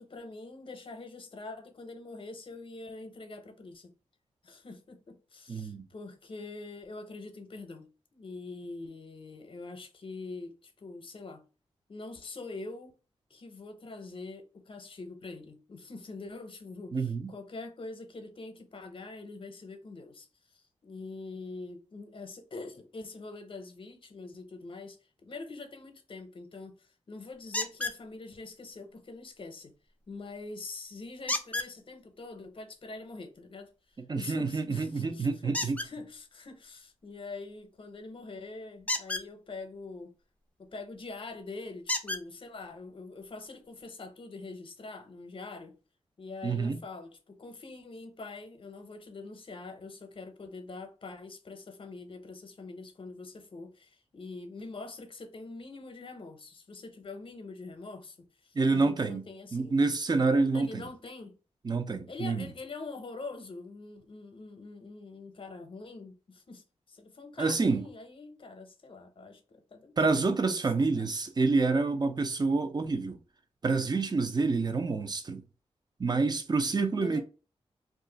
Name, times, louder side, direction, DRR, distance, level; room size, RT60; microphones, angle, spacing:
voice 1, 0.0-3.9 4.4-11.4 11.9-12.9 13.3-20.3 20.5-29.7 30.1-33.7 34.1-40.1 40.6-45.8 46.2-59.8 60.5-61.4 62.1-70.2 70.4-71.1 77.0-77.2, left 3 dB, 50° left, 0.7 m, -44 dB
voice 2, 5.5-5.8 16.9-17.3 34.1-35.8 46.4-46.8 58.5-59.2 59.5-60.8 61.6-62.5 67.4-67.9 70.0-73.2 73.6-75.4 76.0-77.2, right 3 dB, 35° right, 0.6 m, -27 dB
sound 1, 27.5-28.0 31.3-31.7 35.5-35.9 38.8-39.3 40.9-41.0 41.9-42.2 43.2-43.3 43.8-43.9, left 2 dB, 10° left, 0.5 m, -31 dB
2.4 x 2.4 x 3.8 m
cardioid pair, 60°, 11 cm